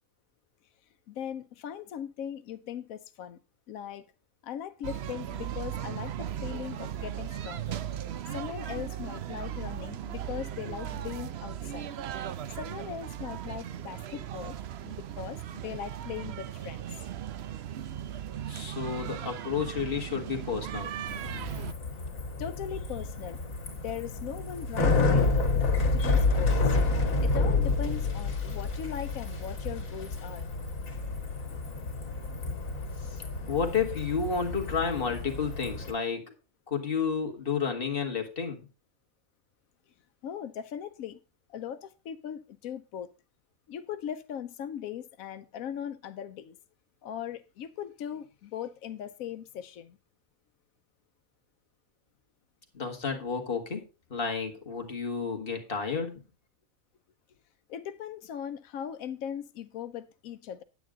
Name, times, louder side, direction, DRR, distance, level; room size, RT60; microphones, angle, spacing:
voice 1, 1.1-3.4 3.7-4.1 4.4-7.8 8.3-11.9 12.5-14.6 14.8-16.9 22.4-23.4 23.8-25.3 25.9-26.8 27.2-30.5 40.2-41.2 41.5-43.1 43.7-46.6 47.0-50.0 57.7-60.6, left 9 dB, 90° left, 1.1 m, -39 dB
sound 1, 4.8-21.7, right 10 dB, 60° right, 0.8 m, -37 dB
voice 2, 18.5-20.9 33.1-36.3 36.7-38.6 52.7-53.8 54.1-56.1, left 6 dB, 40° left, 2.0 m, -31 dB
Bicycle, 21.1-35.9, left 3 dB, 75° left, 2.4 m, -29 dB
9.2 x 9.1 x 3.7 m
omnidirectional pair, 1.4 m